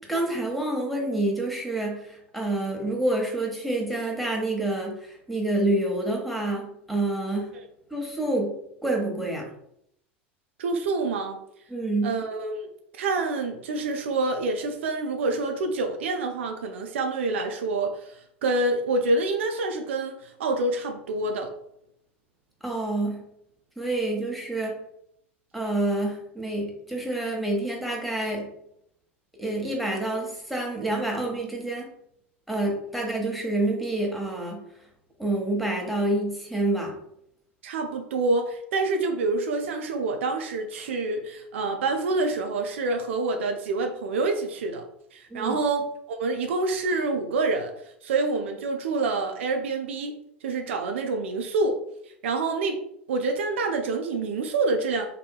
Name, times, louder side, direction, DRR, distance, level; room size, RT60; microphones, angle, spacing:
voice 1, 0.1-7.5 7.9-8.5 8.8-9.5 11.7-12.1 22.6-23.2 23.8-24.7 25.5-28.5 29.4-31.9 32.5-34.6 35.2-36.9 45.3-45.5, right 2 dB, ahead, -1 dB, 0.8 m, -27 dB
voice 2, 10.6-11.4 12.0-21.5 37.6-44.8 45.1-47.7 48.0-50.2 50.4-51.8 52.2-52.8 53.1-55.1, right 3 dB, 70° right, 4 dB, 0.4 m, -27 dB
2.7 x 2.6 x 2.3 m, 0.74 s
figure-of-eight pair, 85°, 7 cm